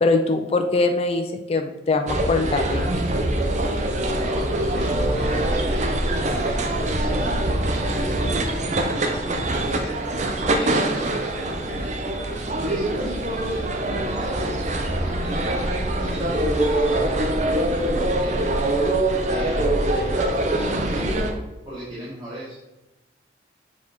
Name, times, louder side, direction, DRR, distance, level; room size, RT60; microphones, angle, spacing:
voice 1, 0.0-2.9, left 3 dB, 35° left, 5 dB, 0.4 m, -22 dB
sound 1, 2.1-21.3, right 1 dB, 40° right, 0.6 m, -23 dB
voice 2, 4.2-7.6 8.2-10.0 10.5-17.3 18.1-18.7 19.2-21.4 21.6-22.6, equal, 25° right, -9 dB, 1.4 m, -37 dB
6.9 x 3.9 x 3.5 m, 1.0 s
head